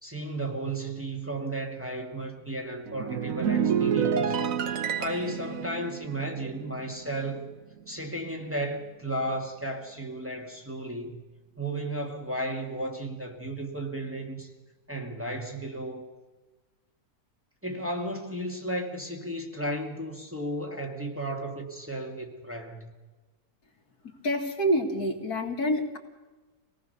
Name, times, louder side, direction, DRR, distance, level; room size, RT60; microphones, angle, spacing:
voice 1, 0.0-4.4 5.0-7.5 7.9-11.2 11.6-14.5 14.9-16.1 17.6-22.9, right 1 dB, 10° right, 1 dB, 2.3 m, -34 dB
sound 1, 2.9-7.5 7.8-8.1, right 7 dB, 60° right, 1.4 m, -29 dB
voice 2, 24.0-26.0, equal, 75° left, 3 dB, 2.7 m, -27 dB
26.0 x 18.5 x 6.8 m, 1.2 s
omnidirectional pair, 1.6 m